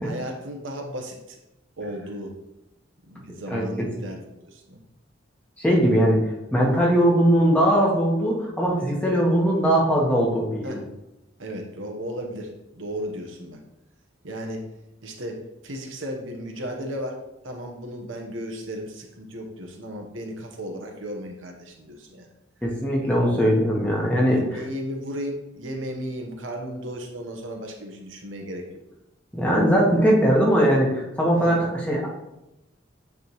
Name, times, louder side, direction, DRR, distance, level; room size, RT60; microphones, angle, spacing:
voice 1, 0.0-1.4 1.8-2.4 3.1-4.8 10.6-10.8 11.4-13.6 14.2-14.7 15.0-22.3 24.3-28.8 31.3-31.6, equal, 85° right, 2 dB, 1.1 m, -35 dB
voice 2, 3.5-3.9 5.6-6.2 6.5-10.8 22.6-24.4 29.3-31.6 31.9-32.1, equal, 5° left, -3 dB, 1.3 m, -20 dB
9.1 x 3.5 x 3.1 m, 0.91 s
head